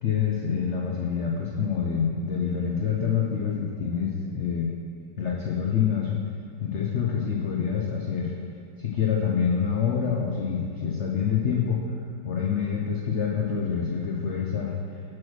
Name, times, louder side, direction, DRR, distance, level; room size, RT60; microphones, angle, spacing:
voice 1, 0.0-4.7 5.2-6.2 6.6-8.3 8.8-11.8 12.2-14.7, left 7 dB, 80° left, -2 dB, 0.6 m, -26 dB
6.2 x 4.5 x 6.2 m, 2.5 s
omnidirectional pair, 2.0 m